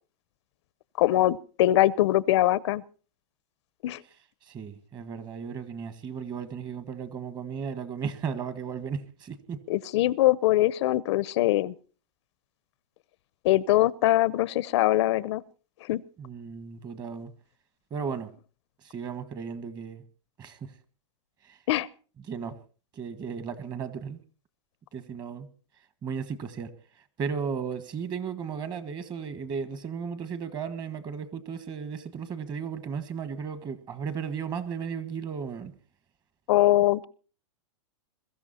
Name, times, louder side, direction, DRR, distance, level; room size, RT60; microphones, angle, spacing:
voice 1, 1.0-2.8 3.8-4.0 9.7-11.7 13.4-15.4 15.8-16.0 21.7-21.9 36.5-37.0, left 15 dB, 60° left, 0.7 m, -22 dB
voice 2, 4.4-9.6 16.2-17.3 17.9-18.3 18.8-20.0 20.4-20.7 21.4-21.6 22.3-22.6 22.9-24.2 24.9-25.5 26.0-26.7 27.2-35.7, right 6 dB, 25° right, 1.6 m, -35 dB
22.5 x 13.5 x 4.2 m
supercardioid pair, 145°, 16 cm